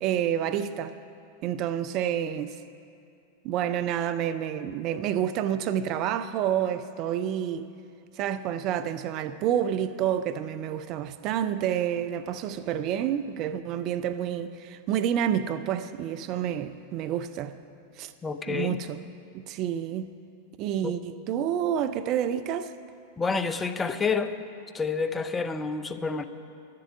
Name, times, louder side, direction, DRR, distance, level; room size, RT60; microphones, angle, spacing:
voice 1, 0.0-0.9 1.4-2.6 3.4-7.7 8.2-17.6 18.0-18.1 18.5-19.0 19.3-20.1 20.6-22.7, right 10 dB, 40° right, 0.4 m, -29 dB
voice 2, 18.2-18.8 20.8-20.9 23.2-24.4 24.7-26.2, left 5 dB, 15° left, 0.6 m, -28 dB
11.0 x 7.6 x 9.7 m
figure-of-eight pair, 90°, 0 cm